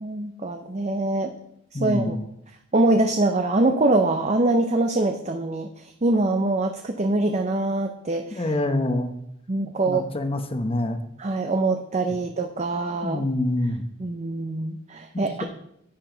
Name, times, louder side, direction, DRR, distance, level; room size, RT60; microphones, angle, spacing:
voice 1, 0.0-1.3 1.8-2.2 2.7-8.4 9.5-10.1 11.2-13.2 14.0-15.4, right 2 dB, 35° right, 5 dB, 0.7 m, -24 dB
voice 2, 1.7-2.3 8.3-9.1 9.9-11.0 13.0-13.8 15.1-15.4, left 1 dB, 30° left, 8 dB, 0.9 m, -26 dB
10.5 x 9.9 x 3.9 m, 0.74 s
head